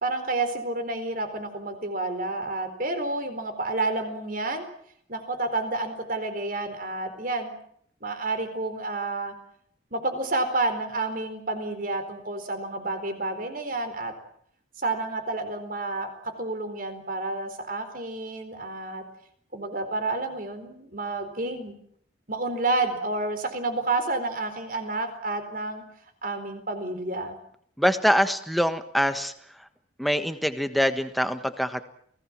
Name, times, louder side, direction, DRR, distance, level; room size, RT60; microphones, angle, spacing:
voice 1, 0.0-4.6 5.1-7.5 8.0-9.3 9.9-14.1 14.8-16.1 16.4-19.0 19.5-21.8 22.3-25.8 26.2-27.4, right 2 dB, 45° right, 8 dB, 4.3 m, -30 dB
voice 2, 27.8-29.3 29.6-29.7 30.0-31.8, equal, ahead, 9 dB, 1.3 m, -24 dB
29.5 x 18.5 x 7.6 m, 0.66 s
head